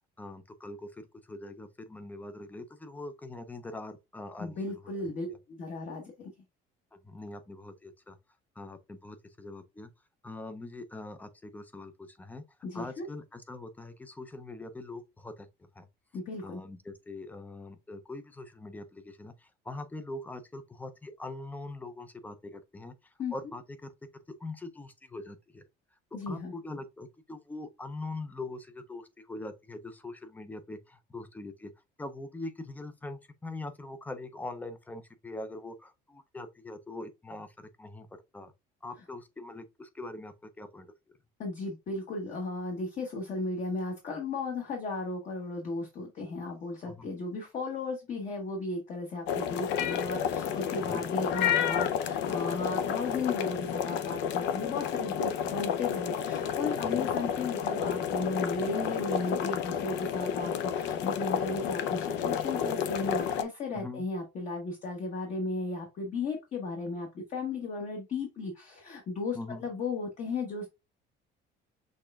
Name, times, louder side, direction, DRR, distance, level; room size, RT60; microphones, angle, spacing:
voice 1, 0.2-5.4 6.9-8.2 8.6-9.9 10.2-12.4 12.7-15.5 15.7-15.9 16.4-23.9 24.4-25.6 26.3-31.7 32.0-38.1 38.3-38.5 38.8-41.2 46.8-47.0 50.8-51.0 56.8-57.1 63.7-64.1 69.3-69.6, left 2 dB, 10° left, 0.5 m, -43 dB
voice 2, 4.4-6.3 12.6-13.1 16.1-16.6 23.2-23.5 26.1-26.5 41.4-70.7, left 3 dB, 40° left, 1.1 m, -35 dB
sound 1, 49.3-63.4, left 8 dB, 65° left, 0.6 m, -31 dB
6.3 x 3.3 x 2.3 m
cardioid pair, 170°, 20 cm